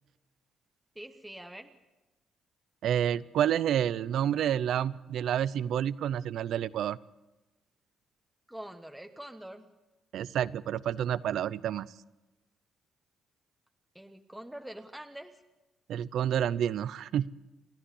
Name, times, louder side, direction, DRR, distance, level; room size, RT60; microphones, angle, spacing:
voice 1, 0.9-1.7 8.5-9.7 13.9-15.4, right 1 dB, 5° right, 6 dB, 1.2 m, -44 dB
voice 2, 2.8-7.0 10.1-11.9 15.9-17.3, right 10 dB, 75° right, 19 dB, 0.6 m, -29 dB
29.5 x 11.5 x 8.3 m, 1.1 s
cardioid pair, 90°, 0 cm